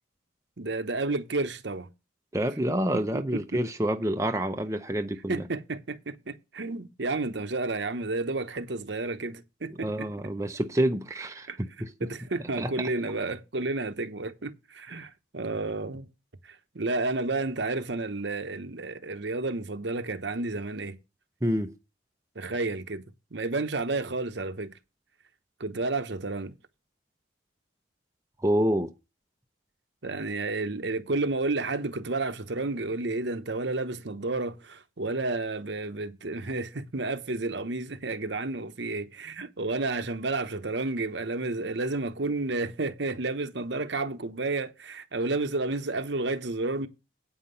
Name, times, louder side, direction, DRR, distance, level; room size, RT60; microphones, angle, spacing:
voice 1, 0.6-1.9 3.1-3.6 5.3-10.1 11.5-11.6 12.0-16.1 16.5-21.0 22.3-23.0 23.3-24.7 25.6-26.5 30.0-46.9, right 3 dB, 70° right, 1.0 m, -31 dB
voice 2, 2.3-5.5 9.8-12.1 12.6-12.9 21.4-21.7 28.4-28.9, right 1 dB, 15° right, 0.6 m, -28 dB
8.8 x 5.7 x 6.8 m
head